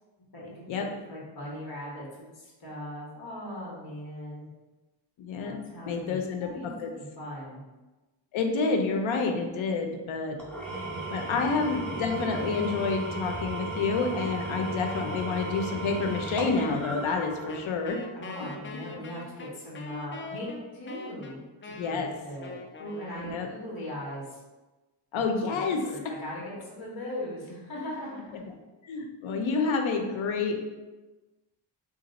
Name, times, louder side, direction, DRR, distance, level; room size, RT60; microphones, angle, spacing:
voice 1, 0.3-4.5 5.4-7.6 11.9-12.0 18.1-24.4 25.5-28.4, left 1 dB, 50° left, -5 dB, 1.3 m, -39 dB
voice 2, 5.2-5.6 5.9-6.5 6.8-6.9 8.3-10.4 11.1-18.0 21.8-22.1 23.2-23.5 25.1-25.8 28.8-30.6, left 4 dB, 85° left, 4 dB, 0.7 m, -28 dB
Engine / Tools, 10.4-17.9, right 2 dB, ahead, 0.8 m, -35 dB
Wind instrument woodwind instrument, 17.5-23.8, left 3 dB, 30° left, 0.3 m, -43 dB
3.2 x 2.6 x 4.0 m, 1.2 s
cardioid pair, 95°, 46 cm